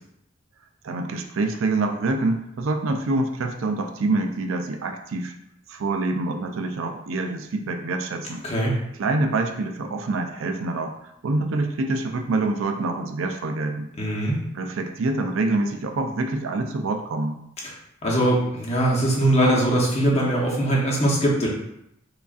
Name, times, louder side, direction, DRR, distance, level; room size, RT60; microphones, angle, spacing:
voice 1, 0.8-5.3 5.7-8.4 9.0-10.9 11.2-13.9 14.5-17.4, right 2 dB, 90° right, 5 dB, 0.5 m, -26 dB
voice 2, 14.0-14.4 18.0-21.5, right 1 dB, 35° left, -3 dB, 0.9 m, -21 dB
5.0 x 2.5 x 2.4 m, 0.78 s
head